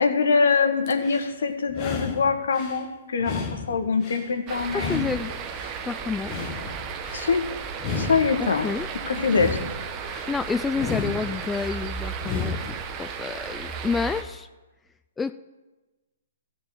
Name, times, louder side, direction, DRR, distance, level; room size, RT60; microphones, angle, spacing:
voice 1, 0.0-5.2 7.1-7.4 7.9-8.7 9.1-9.6, left 5 dB, 70° left, 7 dB, 1.4 m, -24 dB
sound 1, 0.9-1.3 1.7-2.8 3.2-4.3 4.7-5.8 6.2-7.3 7.7-8.8 9.2-10.3 10.7-11.7 12.2-12.8, left 5 dB, 30° left, 1.3 m, -33 dB
sound 2, 4.5-14.2, right 6 dB, 25° right, 1.0 m, -34 dB
voice 2, 4.7-5.3 5.8-6.4 8.4-8.9 10.3-12.6 13.0-14.5 15.2-15.3, left 4 dB, 10° left, 11 dB, 0.3 m, -29 dB
13.5 x 4.6 x 8.8 m, 1.1 s
hypercardioid pair, 140°, 0 cm